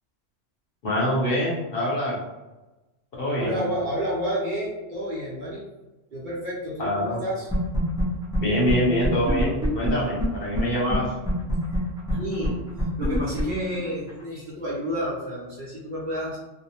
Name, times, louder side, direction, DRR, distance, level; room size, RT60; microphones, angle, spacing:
voice 1, 0.8-2.2 3.2-3.6 6.8-7.2 8.4-11.1, equal, 55° left, -5 dB, 0.9 m, -25 dB
voice 2, 3.4-5.6 6.1-7.5 11.7-16.4, equal, 50° right, -6 dB, 0.7 m, -30 dB
sound 1, 7.5-8.0 8.3-8.4 8.7-8.8 9.0-10.6 10.9-11.0 11.2-14.2, equal, 5° right, 0.3 m, -24 dB
2.6 x 2.1 x 2.8 m, 1.1 s
omnidirectional pair, 1.2 m